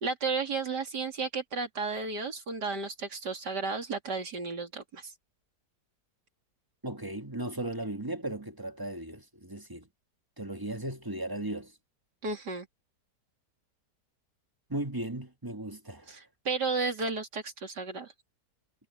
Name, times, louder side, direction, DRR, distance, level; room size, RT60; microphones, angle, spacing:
voice 1, 0.0-5.1 12.2-12.7 16.1-18.1, right 4 dB, 85° right, 3.5 m, -33 dB
voice 2, 6.8-9.9 10.4-11.7 14.7-16.2, right 1 dB, 15° right, 1.5 m, -36 dB
omnidirectional pair, 1.8 m